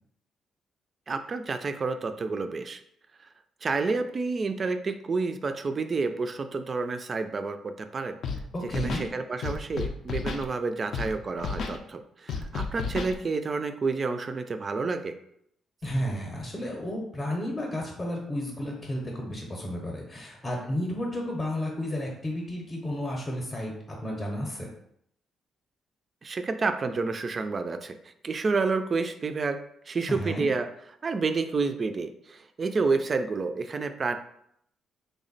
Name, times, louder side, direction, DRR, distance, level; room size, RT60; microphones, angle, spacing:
voice 1, 1.1-2.8 3.6-8.2 8.7-15.1 26.2-29.6 29.9-30.7 31.0-34.2, right 4 dB, 40° right, 8 dB, 0.3 m, -29 dB
Scratching (performance technique), 8.2-8.4 8.7-9.1 9.4-10.4 10.9-11.1 11.4-11.8 12.3-13.1, left 5 dB, 65° left, 0.4 m, -32 dB
voice 2, 8.5-9.1 15.8-24.7 30.1-30.5, equal, 25° left, 0 dB, 0.7 m, -32 dB
3.4 x 2.1 x 3.9 m, 0.72 s
cardioid pair, 90°, 0 cm